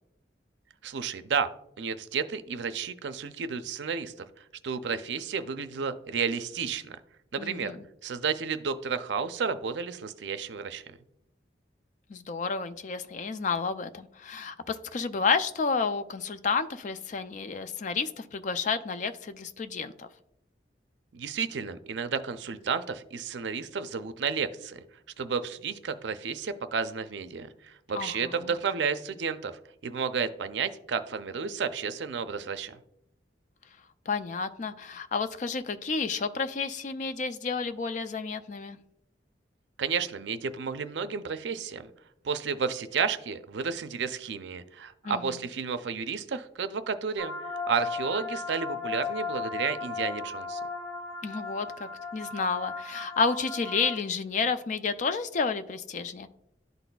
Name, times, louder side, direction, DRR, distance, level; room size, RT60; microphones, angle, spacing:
voice 1, 0.8-1.5 1.8-7.0 7.3-7.8 8.0-11.0 21.1-24.8 25.2-32.8 39.8-41.9 42.2-47.3 47.7-50.6, right 6 dB, 75° right, 11 dB, 0.5 m, -32 dB
voice 2, 7.4-7.8 12.1-20.1 27.9-28.5 34.1-38.8 45.0-45.4 51.2-56.3, left 5 dB, 40° left, 11 dB, 0.4 m, -31 dB
sound 1, 47.2-54.0, left 4 dB, 55° left, 1.8 m, -36 dB
12.0 x 4.1 x 2.3 m, 0.80 s
head